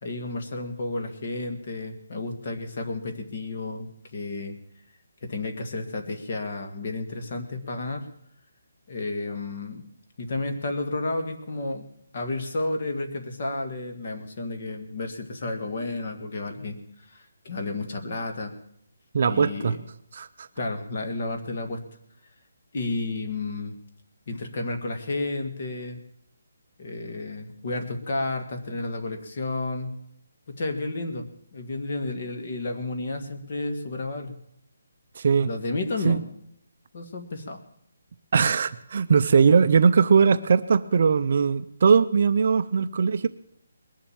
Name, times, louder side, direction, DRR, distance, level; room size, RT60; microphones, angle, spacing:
voice 1, 0.0-4.6 5.2-8.1 8.9-9.8 10.2-11.8 12.1-16.8 17.1-18.5 19.2-19.8 20.6-21.8 22.7-23.8 24.3-26.0 26.8-29.9 30.5-31.3 31.5-34.4 35.4-36.2 36.9-37.6, left 2 dB, 35° left, 5 dB, 1.6 m, -31 dB
voice 2, 19.1-19.7 20.1-20.5 35.2-35.5 36.0-36.2 38.3-43.3, right 6 dB, 35° right, 11 dB, 0.5 m, -20 dB
20.5 x 7.3 x 8.6 m, 0.72 s
hypercardioid pair, 175°, 0 cm